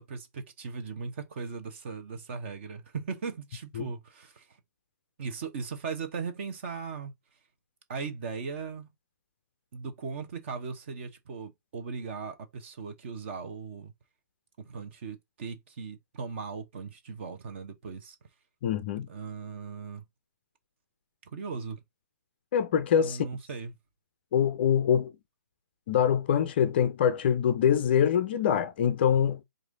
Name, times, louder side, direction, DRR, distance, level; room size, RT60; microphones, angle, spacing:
voice 1, 0.0-4.6 5.2-7.1 7.9-8.9 9.7-13.9 14.6-18.2 19.1-20.0 21.3-21.8 23.0-23.7, right 5 dB, 35° right, 1.1 m, -38 dB
voice 2, 18.6-19.1 22.5-23.3 24.3-25.1 25.9-29.4, left 8 dB, 30° left, 0.5 m, -24 dB
4.7 x 2.6 x 3.9 m
figure-of-eight pair, 140°, 11 cm